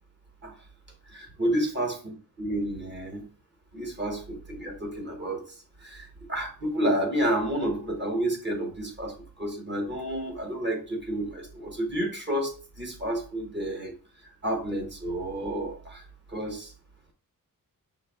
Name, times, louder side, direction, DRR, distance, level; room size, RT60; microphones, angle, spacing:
voice 1, 1.1-3.2 3.7-5.4 5.8-13.9 14.4-16.0 16.3-16.7, right 1 dB, 30° right, 2 dB, 1.2 m, -30 dB
5.0 x 2.3 x 3.5 m, 0.37 s
wide cardioid pair, 120°, 36 cm